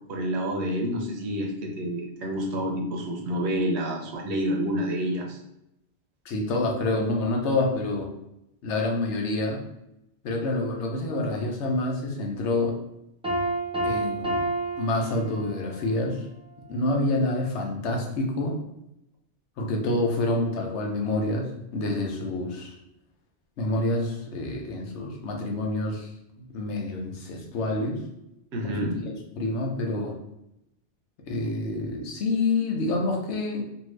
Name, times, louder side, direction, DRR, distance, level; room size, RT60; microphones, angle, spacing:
voice 1, 0.1-5.4 28.5-29.0, equal, 75° right, 1 dB, 0.9 m, -28 dB
voice 2, 6.2-8.1 8.6-9.6 10.2-12.7 13.8-14.4 14.8-16.3 16.7-18.6 19.6-22.8 23.6-26.1 26.4-28.0 28.6-30.2 31.3-33.6, left 2 dB, 80° left, 1 dB, 1.0 m, -27 dB
Piano, 13.2-15.8, right 2 dB, 5° right, 0.5 m, -29 dB
2.7 x 2.6 x 3.1 m, 0.83 s
omnidirectional pair, 1.2 m